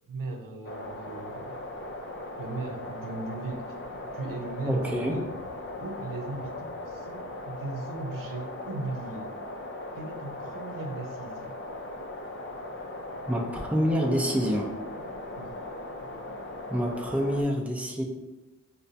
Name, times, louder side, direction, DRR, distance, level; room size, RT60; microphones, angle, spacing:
voice 1, 0.1-1.6 2.4-3.7 4.1-5.4 5.8-9.3 9.9-11.6 15.4-15.5, right 2 dB, 90° right, 2 dB, 0.6 m, -37 dB
sound 1, 0.6-17.4, left 1 dB, 40° left, 0.5 m, -39 dB
voice 2, 4.7-5.2 13.3-14.7 16.7-18.0, equal, 5° right, -1 dB, 0.6 m, -27 dB
4.9 x 2.2 x 2.7 m, 1.1 s
cardioid pair, 70°, 32 cm